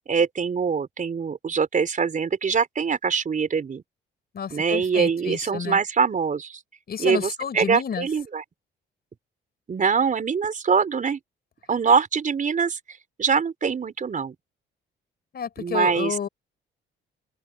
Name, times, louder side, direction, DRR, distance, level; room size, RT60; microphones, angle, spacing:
voice 1, 0.1-3.8 4.5-6.6 7.0-8.4 9.7-11.2 11.7-12.8 13.2-14.3 15.6-16.1, right 6 dB, 40° right, 4.6 m, -23 dB
voice 2, 4.3-5.8 6.9-8.1 15.3-16.3, left 7 dB, 50° left, 5.9 m, -30 dB
open air
cardioid pair, 90°, 20 cm